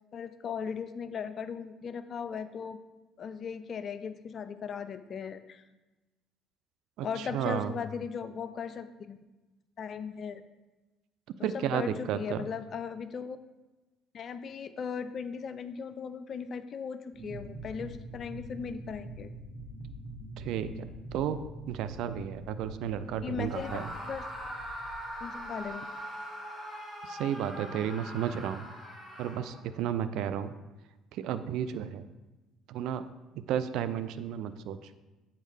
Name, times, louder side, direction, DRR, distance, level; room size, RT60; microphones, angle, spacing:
voice 1, 0.1-2.8 3.2-5.6 7.0-9.2 9.8-10.4 11.4-13.4 14.1-19.3 23.2-23.7 24.0-24.2 25.2-25.8, left 6 dB, 45° left, 12 dB, 0.3 m, -38 dB
voice 2, 7.0-7.7 11.4-12.5 20.4-21.4 21.7-23.9 27.0-28.7 29.2-30.5 31.1-32.0 32.7-33.0 33.4-34.9, right 9 dB, 55° right, 11 dB, 0.3 m, -33 dB
sound 1, 17.1-25.7, right 1 dB, 15° left, 1.6 m, -45 dB
Screaming, 23.4-29.7, equal, 20° right, 2.3 m, -42 dB
8.0 x 4.2 x 3.3 m, 1.1 s
figure-of-eight pair, 50°, 0 cm